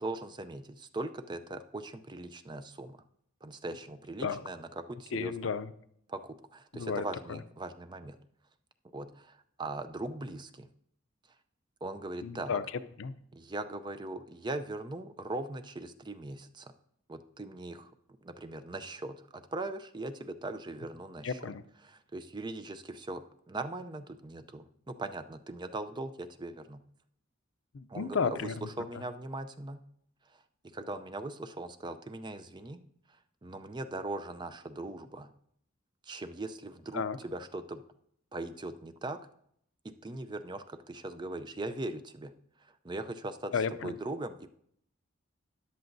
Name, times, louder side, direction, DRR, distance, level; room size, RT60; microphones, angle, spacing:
voice 1, 0.0-3.0 3.4-5.5 6.1-8.2 8.9-10.7 11.8-12.6 13.3-16.7 17.1-17.9 18.2-21.3 21.8-26.8 27.9-28.4 28.8-29.8 30.7-32.8 33.4-35.3 36.1-37.8 38.3-39.2 40.0-42.3 42.8-43.5 43.8-44.5, right 2 dB, 20° right, 10 dB, 0.5 m, -40 dB
voice 2, 5.1-5.7 6.7-7.4 12.2-13.1 21.2-21.6 27.7-29.0 36.9-37.2 43.5-44.0, left 5 dB, 75° left, 13 dB, 0.5 m, -33 dB
13.5 x 9.8 x 2.6 m, 0.69 s
head